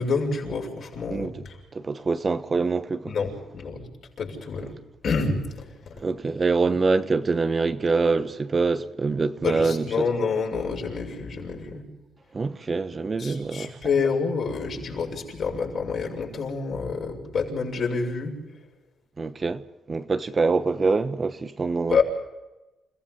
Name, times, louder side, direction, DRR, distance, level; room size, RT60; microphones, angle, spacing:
voice 1, 0.0-1.6 3.1-3.9 4.2-4.7 5.0-5.9 9.4-11.8 13.2-18.4 21.9-22.0, left 5 dB, 55° left, 6.8 m, -28 dB
voice 2, 1.7-3.1 6.0-10.1 12.3-13.8 19.2-19.6 19.9-22.0, right 4 dB, 35° right, 1.1 m, -25 dB
29.5 x 16.5 x 5.7 m
cardioid pair, 90°, 0 cm